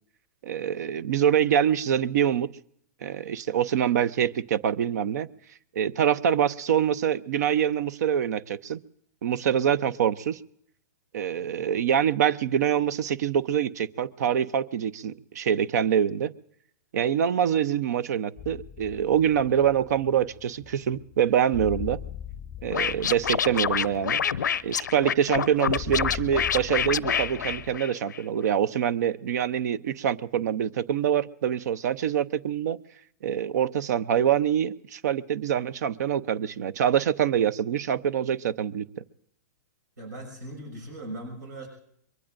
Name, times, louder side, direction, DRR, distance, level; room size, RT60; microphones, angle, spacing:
voice 1, 0.4-2.5 3.0-5.3 5.7-8.8 9.2-10.4 11.1-16.3 16.9-22.0 22.6-24.2 24.6-32.8 33.2-38.9, right 9 dB, 70° right, 19 dB, 0.7 m, -25 dB
sound 1, 18.4-27.8, left 10 dB, 20° left, 0.5 m, -41 dB
Scratching (performance technique), 22.7-28.2, left 8 dB, 90° left, 0.5 m, -27 dB
voice 2, 40.0-41.7, right 1 dB, 85° right, 3 dB, 6.1 m, -39 dB
24.0 x 22.5 x 2.6 m, 0.70 s
hypercardioid pair, 130°, 10 cm